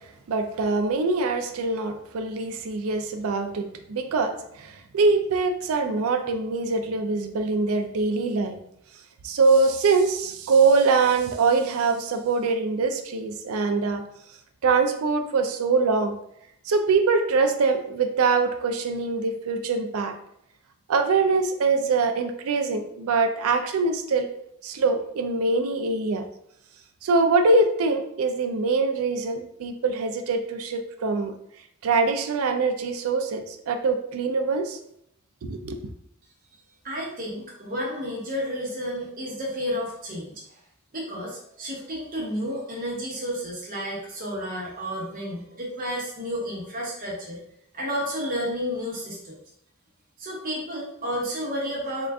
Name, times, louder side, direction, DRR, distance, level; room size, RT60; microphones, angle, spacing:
voice 1, 0.3-8.6 9.2-14.0 14.6-16.2 16.7-20.2 20.9-24.3 24.6-26.2 27.0-31.3 31.8-34.8 35.4-35.8, right 4 dB, 80° right, 5 dB, 0.4 m, -23 dB
voice 2, 36.8-40.6 40.9-47.4 47.7-49.4 50.2-52.1, equal, 40° right, -4 dB, 0.8 m, -31 dB
3.7 x 2.4 x 3.4 m, 0.74 s
head